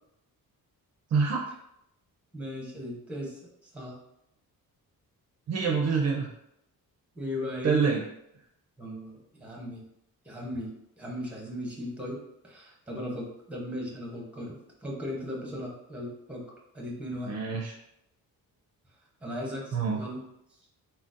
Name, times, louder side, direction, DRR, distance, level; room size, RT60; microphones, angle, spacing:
voice 1, 1.1-1.5 5.5-6.3 7.6-8.0 17.3-17.7 19.7-20.0, right 5 dB, 45° right, -1 dB, 0.5 m, -26 dB
voice 2, 2.3-3.4 3.7-4.0 7.1-7.9 8.8-9.8 10.2-16.4 16.7-17.4 19.2-20.2, left 1 dB, 5° right, -3 dB, 0.8 m, -37 dB
3.8 x 2.1 x 2.5 m, 0.78 s
cardioid pair, 115°, 37 cm